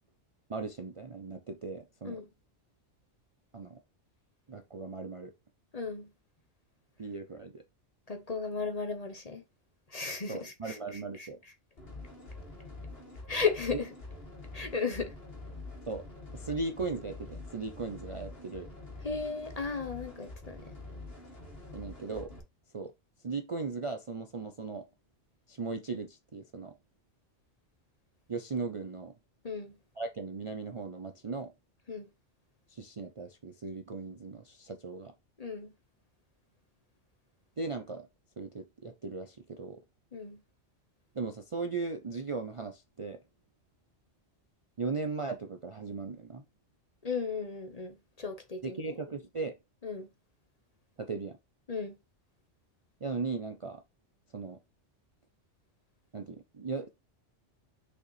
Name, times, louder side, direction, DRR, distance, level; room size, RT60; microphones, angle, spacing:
voice 1, 0.5-2.2 3.5-3.8 4.5-5.3 7.0-7.6 10.3-11.4 13.7-13.8 15.9-16.1 16.3-18.7 21.7-22.3 22.7-22.9 23.2-24.9 25.5-26.8 28.3-29.1 30.0-31.5 32.7-35.1 37.6-38.1 38.4-39.8 41.1-43.2 44.8-46.4 48.6-49.6 51.0-51.4 53.0-53.8 54.3-54.6 56.1-56.9, right 4 dB, 35° right, 0.5 m, -37 dB
voice 2, 5.7-6.1 8.1-9.4 9.9-11.3 13.3-13.9 14.5-15.2 19.0-20.7 29.4-29.8 31.9-32.1 35.4-35.7 40.1-40.4 47.0-48.9 49.8-50.1 51.7-52.0, left 5 dB, 35° left, 0.9 m, -35 dB
sound 1, 11.8-22.4, left 2 dB, 50° left, 2.4 m, -46 dB
6.5 x 5.3 x 3.1 m
omnidirectional pair, 1.2 m